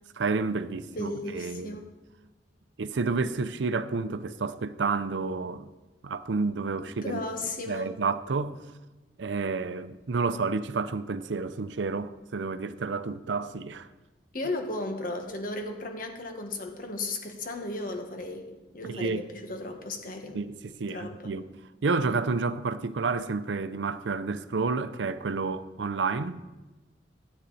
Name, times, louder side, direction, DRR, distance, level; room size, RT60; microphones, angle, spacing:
voice 1, 0.2-1.8 2.8-5.7 6.0-7.2 7.7-8.6 9.2-13.9 18.8-19.3 20.3-21.5 21.8-26.4, right 4 dB, 85° right, 0.6 m, -30 dB
voice 2, 0.9-1.9 7.0-7.9 14.3-20.4 20.9-21.3, left 2 dB, 50° left, 1.5 m, -35 dB
13.5 x 8.9 x 4.1 m
head